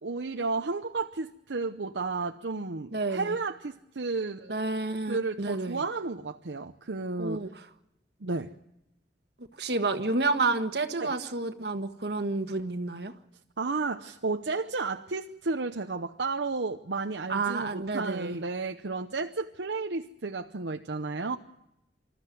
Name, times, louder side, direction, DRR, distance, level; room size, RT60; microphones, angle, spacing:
voice 1, 0.0-4.5 5.1-7.5 8.2-8.5 11.0-11.1 13.6-21.4, right 3 dB, 80° right, 0.9 m, -32 dB
voice 2, 2.9-3.3 4.5-5.8 7.2-7.5 9.6-13.1 17.3-18.4, right 3 dB, 65° right, 1.5 m, -30 dB
26.5 x 14.0 x 9.2 m
head